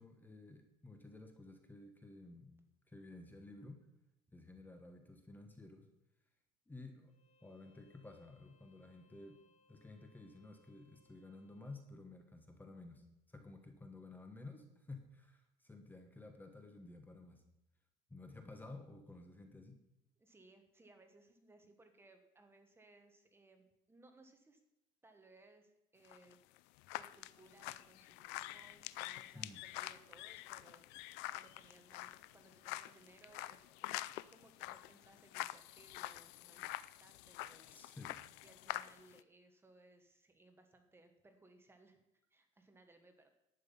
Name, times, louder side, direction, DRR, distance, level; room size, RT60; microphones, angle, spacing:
voice 1, 0.0-2.6 2.9-3.9 4.3-5.9 6.7-7.1 7.4-9.4 9.7-17.4 18.1-19.8 29.3-29.6 37.7-38.2, left 2 dB, 10° left, 5 dB, 1.2 m, -53 dB
Bowed string instrument, 7.1-11.9, left 3 dB, 45° left, 1.8 m, -73 dB
voice 2, 20.2-24.6 25.0-26.4 26.9-37.9 38.4-42.0 42.3-43.3, right 2 dB, 15° right, 6 dB, 1.3 m, -65 dB
sound 1, 26.0-39.2, left 17 dB, 85° left, 0.4 m, -47 dB
11.5 x 9.1 x 5.5 m, 0.86 s
cardioid pair, 140°, 17 cm